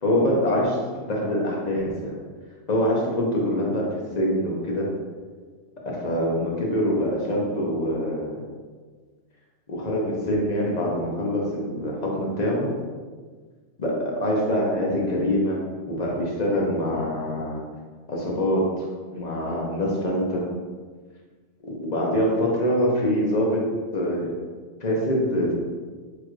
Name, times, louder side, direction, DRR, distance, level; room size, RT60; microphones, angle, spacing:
voice 1, 0.0-2.1 2.7-4.9 5.9-8.4 9.7-12.7 13.8-15.6 15.8-17.6 18.1-18.9 19.1-20.5 21.7-23.6 23.9-24.3 24.8-25.5, equal, 40° left, -3 dB, 0.9 m, -24 dB
6.6 x 2.5 x 3.1 m, 1.5 s
omnidirectional pair, 1.3 m